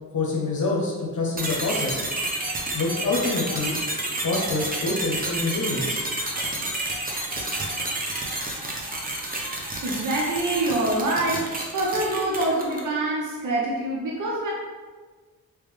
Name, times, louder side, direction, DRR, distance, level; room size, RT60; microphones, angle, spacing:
voice 1, 0.1-2.0 2.7-3.7 4.0-6.0, left 3 dB, 60° left, -3 dB, 0.8 m, -26 dB
sound 1, 1.4-13.0, right 1 dB, 25° right, 0.9 m, -30 dB
voice 2, 9.8-14.5, right 2 dB, 60° right, -4 dB, 0.8 m, -25 dB
3.3 x 3.2 x 3.2 m, 1.4 s
cardioid pair, 55°, 34 cm